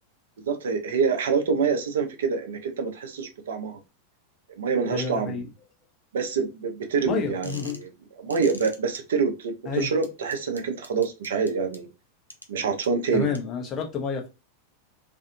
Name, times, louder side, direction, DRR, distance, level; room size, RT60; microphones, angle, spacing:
voice 1, 0.5-3.8 4.6-5.3 6.1-7.9 8.2-11.9 12.5-13.3, right 5 dB, 60° right, 0.6 m, -26 dB
voice 2, 4.9-5.5 7.0-7.8 9.7-9.9 13.1-14.3, left 6 dB, 30° left, 0.8 m, -29 dB
sound 1, 7.4-7.9 8.3-9.0 10.0-11.8 12.3-12.5 12.8-12.9 13.3-13.4, equal, 90° left, 0.4 m, -42 dB
2.6 x 2.5 x 2.6 m
figure-of-eight pair, 90°, 0 cm